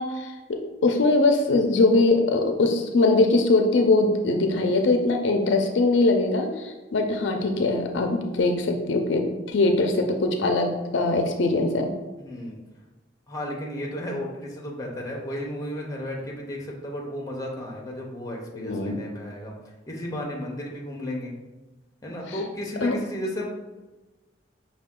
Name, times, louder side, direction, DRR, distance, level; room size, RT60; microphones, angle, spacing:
voice 1, 0.0-11.9 18.5-19.0 22.3-22.4 22.8-23.0, left 2 dB, 65° left, 4 dB, 0.4 m, -22 dB
voice 2, 12.2-12.6 13.3-19.5 19.9-21.3 22.0-23.5, left 1 dB, 15° left, -1 dB, 0.7 m, -33 dB
5.5 x 2.3 x 3.6 m, 1.2 s
head